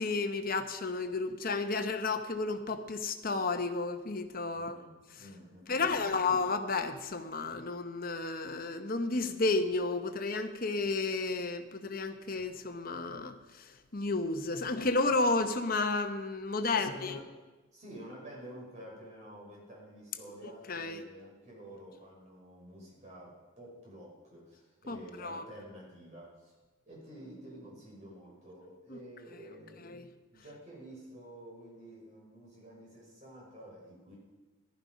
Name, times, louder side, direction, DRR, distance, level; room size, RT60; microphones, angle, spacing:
voice 1, 0.0-4.9 5.7-17.1 20.4-21.0 24.9-25.4 28.9-29.0 29.8-30.0, left 3 dB, 45° left, 8 dB, 0.9 m, -32 dB
voice 2, 4.5-6.3 16.6-17.3 17.7-26.5 26.9-29.9 30.3-34.2, right 1 dB, 35° right, -4 dB, 5.4 m, -50 dB
15.0 x 11.5 x 5.2 m, 1.2 s
head